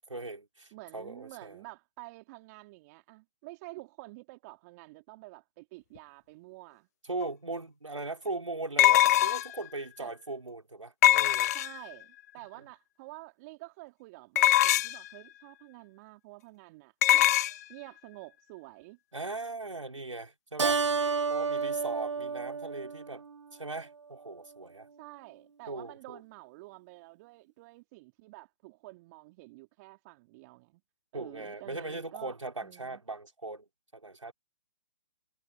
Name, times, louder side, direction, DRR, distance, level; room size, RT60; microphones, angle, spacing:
voice 1, 0.1-1.6 7.0-11.5 19.1-20.8 21.3-23.2 23.5-24.9 25.7-26.2 31.1-33.6 33.9-34.3, right 2 dB, 90° right, 4.6 m, -39 dB
voice 2, 0.7-6.9 10.0-10.1 11.5-17.3 17.7-19.0 25.0-30.8 31.1-33.0, right 23 dB, 35° right, 3.4 m, -49 dB
metallic object falling stone floor, 7.2-7.3 8.8-9.6 11.0-11.9 14.4-15.1 17.0-17.5, left 14 dB, 35° left, 0.4 m, -22 dB
Keyboard (musical), 20.6-23.5, right 5 dB, 75° right, 1.5 m, -30 dB
figure-of-eight pair, 130°, 16 cm